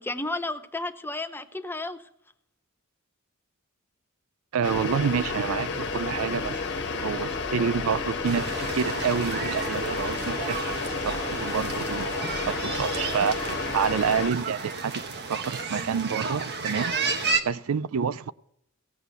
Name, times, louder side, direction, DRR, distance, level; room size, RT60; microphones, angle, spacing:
voice 1, 0.0-2.1, left 2 dB, 10° left, 0.7 m, -32 dB
voice 2, 4.5-10.8 11.0-12.1 12.5-15.0 15.3-16.9 17.4-18.3, right 6 dB, 85° right, 0.4 m, -28 dB
sound 1, 4.6-14.3, left 4 dB, 55° left, 1.3 m, -31 dB
sound 2, 8.2-17.4, right 4 dB, 50° right, 1.2 m, -32 dB
16.5 x 8.1 x 5.5 m
head